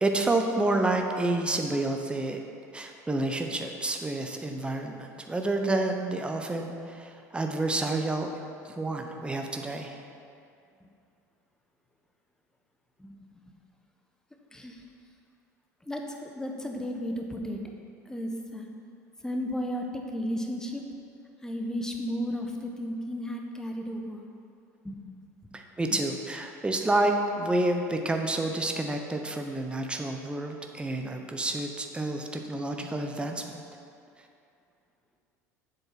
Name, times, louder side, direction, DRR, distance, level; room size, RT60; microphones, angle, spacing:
voice 1, 0.0-2.4 2.7-8.3 8.6-10.0 25.5-33.6, right 2 dB, 10° right, 3 dB, 0.8 m, -29 dB
voice 2, 14.5-14.8 15.8-17.6 18.0-18.7 19.2-20.8 21.4-24.2 24.8-25.0 25.4-25.6 25.9-26.0, equal, 5° left, 2 dB, 1.3 m, -34 dB
7.8 x 7.2 x 5.9 m, 2.5 s
hypercardioid pair, 70°, 9 cm